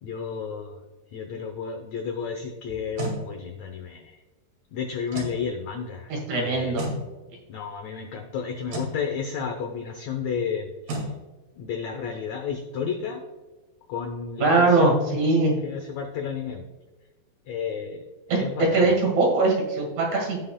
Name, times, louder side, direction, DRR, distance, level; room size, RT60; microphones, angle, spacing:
voice 1, 0.0-0.7 1.1-4.2 4.7-6.1 6.5-6.8 7.5-11.0 11.6-13.2 13.9-15.2 15.6-16.6 17.5-18.0 18.3-18.9, left 6 dB, 80° left, 5 dB, 1.6 m, -32 dB
sound 1, 2.7-3.2 5.1-5.4 6.8-7.0 8.7-9.0 10.9-11.1, right 2 dB, 75° right, 3.8 m, -31 dB
voice 2, 6.1-6.8 14.4-15.6 18.3-20.4, right 3 dB, 55° right, -1 dB, 3.1 m, -21 dB
17.0 x 5.6 x 2.2 m, 1.2 s
omnidirectional pair, 4.2 m